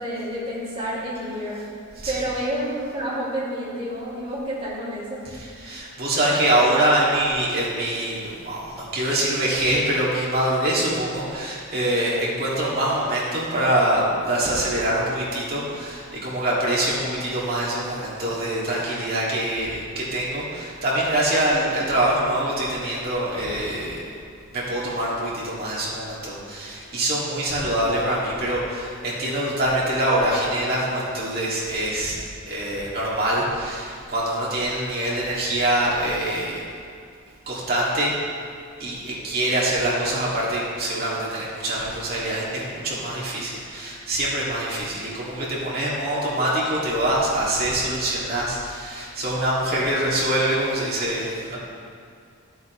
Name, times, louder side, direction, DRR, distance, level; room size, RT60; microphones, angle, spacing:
voice 1, 0.0-1.6 2.1-5.2, equal, 25° right, -8 dB, 2.6 m, -29 dB
voice 2, 5.3-24.0 24.5-32.2 32.4-36.7 37.5-38.1 38.8-51.6, right 1 dB, 45° right, -6 dB, 2.2 m, -24 dB
12.5 x 8.1 x 3.1 m, 2.3 s
head